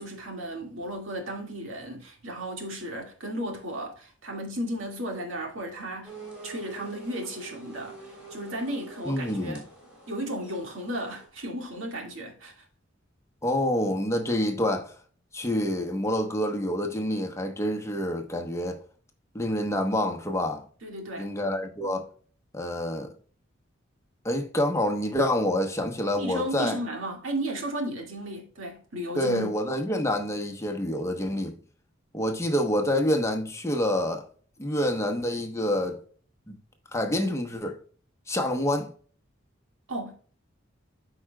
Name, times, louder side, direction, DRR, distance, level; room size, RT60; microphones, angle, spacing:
voice 1, 0.0-6.1 6.4-9.6 10.1-12.6 20.8-21.3 26.2-29.5 39.9-40.1, right 1 dB, 80° right, 2.0 m, -34 dB
sound 1, 6.0-11.3, right 3 dB, 5° right, 3.4 m, -45 dB
voice 2, 9.1-9.6 13.4-14.9 15.3-18.8 19.3-20.6 21.2-22.1 22.5-23.1 24.2-26.8 29.1-31.6 32.1-34.2 34.6-36.0 36.5-36.6 36.9-37.8 38.3-38.9, left 1 dB, 15° left, 0.9 m, -27 dB
13.5 x 4.9 x 2.2 m
head